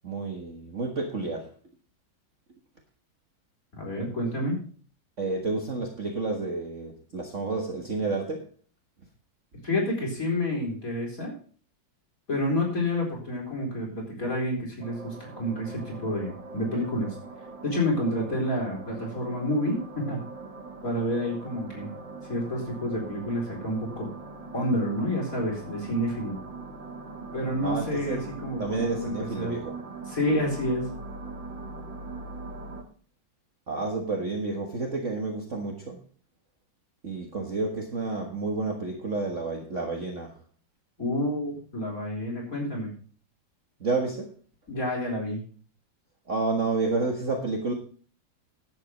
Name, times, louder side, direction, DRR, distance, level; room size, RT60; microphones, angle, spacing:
voice 1, 0.0-1.5 5.2-8.5 27.6-28.2 28.6-29.7 33.7-36.0 37.0-40.4 43.8-44.3 46.3-47.7, right 3 dB, 40° right, 1.8 m, -30 dB
voice 2, 3.7-4.6 9.6-11.3 12.3-17.2 17.6-20.2 20.8-21.9 22.3-24.1 24.5-26.4 27.3-29.5 30.1-30.9 41.0-42.9 44.7-45.4, left 1 dB, 45° left, 4.7 m, -29 dB
sound 1, 14.8-32.8, right 3 dB, 70° right, 2.7 m, -41 dB
11.0 x 8.5 x 5.1 m
omnidirectional pair, 2.1 m